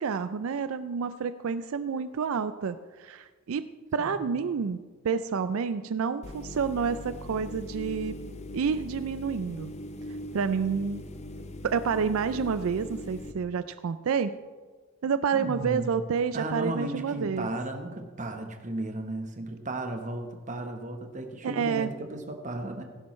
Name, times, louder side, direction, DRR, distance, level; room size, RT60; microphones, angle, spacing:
voice 1, 0.0-3.6 3.9-8.1 8.5-9.7 10.3-11.0 11.6-14.4 15.0-17.5 21.4-21.9, right 6 dB, 80° right, 12 dB, 0.4 m, -29 dB
sound 1, 6.2-13.3, left 1 dB, 30° left, 0.6 m, -41 dB
voice 2, 15.3-15.9 16.3-22.8, right 2 dB, 35° right, 5 dB, 1.0 m, -35 dB
16.0 x 11.0 x 3.2 m, 1.4 s
head